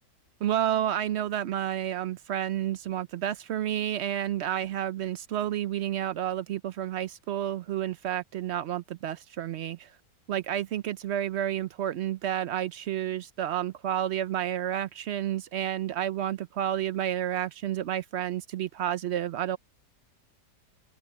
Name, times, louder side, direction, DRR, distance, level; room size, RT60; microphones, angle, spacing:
voice 1, 0.4-9.9 10.3-19.6, right 11 dB, 90° right, 0.5 m, -30 dB
open air
omnidirectional pair, 1.8 m